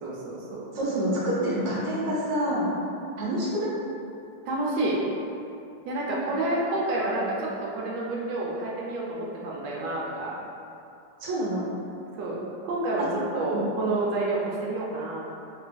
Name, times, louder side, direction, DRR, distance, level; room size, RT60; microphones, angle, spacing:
voice 1, 0.0-0.7 4.4-5.0 5.9-10.4 12.2-13.1 13.3-15.3, right 2 dB, 85° right, -4 dB, 1.3 m, -29 dB
voice 2, 0.7-2.7 3.2-3.7 11.2-11.6 13.0-13.1 13.4-13.6, right 1 dB, 55° right, -7 dB, 1.1 m, -27 dB
3.6 x 3.3 x 2.2 m, 2.7 s
omnidirectional pair, 1.9 m